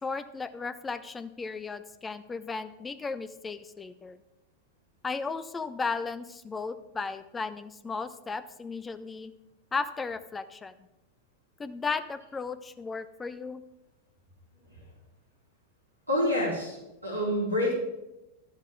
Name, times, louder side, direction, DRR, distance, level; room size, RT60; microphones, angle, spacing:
voice 1, 0.0-4.2 5.0-9.3 9.7-10.7 11.6-13.6, left 4 dB, 15° left, 14 dB, 0.6 m, -35 dB
voice 2, 16.1-16.8 17.0-17.7, left 1 dB, 90° right, -4 dB, 4.0 m, -27 dB
12.5 x 10.5 x 3.6 m, 0.93 s
figure-of-eight pair, 90°, 0 cm